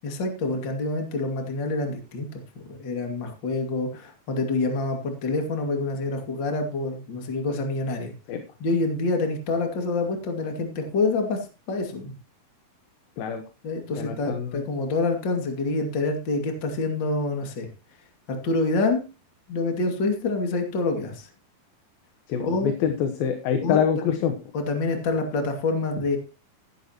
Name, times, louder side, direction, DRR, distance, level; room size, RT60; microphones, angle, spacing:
voice 1, 0.0-8.1 8.6-12.1 13.6-17.7 18.3-19.0 19.5-21.3 22.4-22.7 23.6-23.8 24.1-24.2 24.5-26.2, left 3 dB, 35° left, 4 dB, 2.7 m, -27 dB
voice 2, 14.0-14.6 22.3-24.3, left 8 dB, 75° left, 6 dB, 3.0 m, -25 dB
15.5 x 11.0 x 3.0 m, 0.31 s
omnidirectional pair, 4.3 m